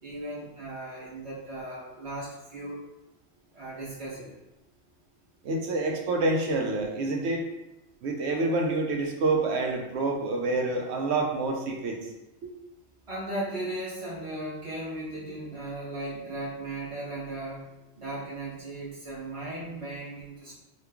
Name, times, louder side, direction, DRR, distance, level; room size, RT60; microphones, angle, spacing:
voice 1, 0.0-2.9 3.5-4.4 13.1-17.7 18.0-20.5, right 1 dB, 30° right, -8 dB, 1.2 m, -37 dB
voice 2, 5.4-7.5 8.0-12.0, right 2 dB, 80° right, 2 dB, 0.9 m, -27 dB
3.1 x 2.4 x 3.4 m, 0.92 s
omnidirectional pair, 1.1 m